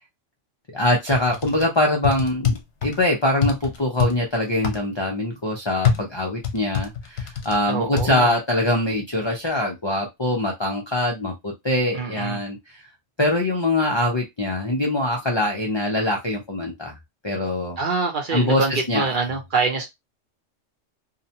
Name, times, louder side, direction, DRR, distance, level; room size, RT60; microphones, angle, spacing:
voice 1, 0.7-12.6 13.2-17.0 17.2-17.8 18.3-19.1, left 1 dB, 40° left, 0.4 m, -23 dB
sound 1, 1.1-1.7 2.0-3.0 3.4-4.1 4.6-4.8 5.8-7.6 8.0-8.1, left 7 dB, 60° left, 0.8 m, -24 dB
voice 2, 7.6-8.4 11.9-12.4 17.8-19.9, right 4 dB, 50° right, 0.8 m, -25 dB
2.8 x 2.1 x 2.7 m
omnidirectional pair, 1.3 m